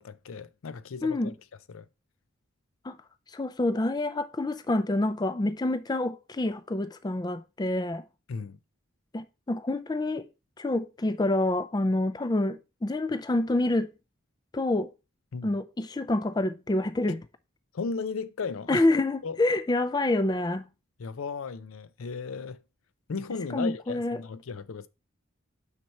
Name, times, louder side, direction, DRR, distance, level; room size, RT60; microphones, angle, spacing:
voice 1, 0.0-1.3 1.7-1.9 8.3-8.6 15.3-15.5 17.1-17.2 17.7-18.9 19.2-19.4 21.0-22.6 23.1-24.9, left 5 dB, 80° left, 0.5 m, -35 dB
voice 2, 1.0-1.3 2.8-3.0 3.3-8.0 9.1-10.3 10.6-13.9 14.5-14.9 15.4-17.2 18.7-20.6 23.5-24.2, left 2 dB, 20° left, 0.3 m, -27 dB
6.2 x 5.8 x 4.3 m
head